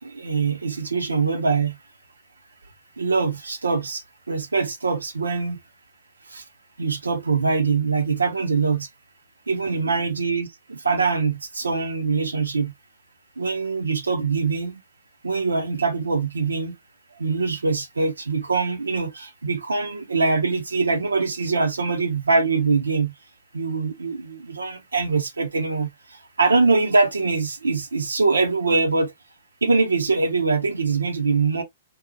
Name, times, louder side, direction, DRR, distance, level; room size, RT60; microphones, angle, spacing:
voice 1, 0.1-1.7 3.0-4.0 4.3-5.6 6.3-6.4 6.8-8.9 9.5-12.7 13.4-14.8 15.2-16.7 17.2-23.1 23.5-25.9 26.4-29.1 29.6-31.6, right 4 dB, 85° right, 0.5 m, -23 dB
2.6 x 2.1 x 2.7 m
hypercardioid pair, 115°, 0 cm